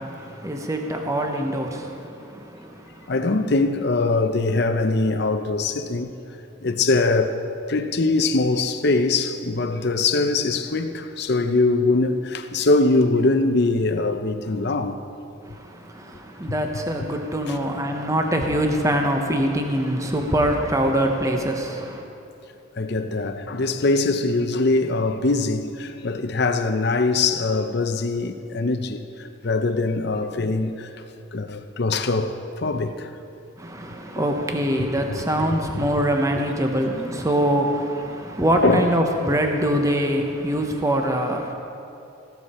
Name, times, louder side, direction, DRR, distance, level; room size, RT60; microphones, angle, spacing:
voice 1, 0.0-3.1 15.4-22.0 33.6-41.5, right 1 dB, 15° right, 0.8 m, -24 dB
voice 2, 3.1-6.1 6.6-7.4 7.7-15.0 17.5-17.6 22.8-30.9 31.3-33.1 34.8-34.9 38.6-38.9 41.3-41.4, left 3 dB, 55° left, 0.7 m, -22 dB
15.5 x 13.0 x 4.3 m
head